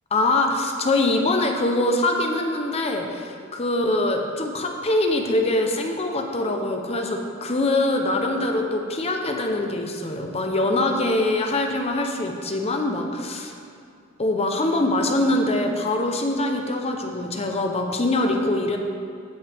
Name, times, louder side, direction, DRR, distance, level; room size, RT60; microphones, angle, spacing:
voice 1, 0.1-13.5 14.2-18.8, left 2 dB, 30° left, 3 dB, 0.7 m, -23 dB
15.5 x 5.9 x 3.5 m, 2.4 s
head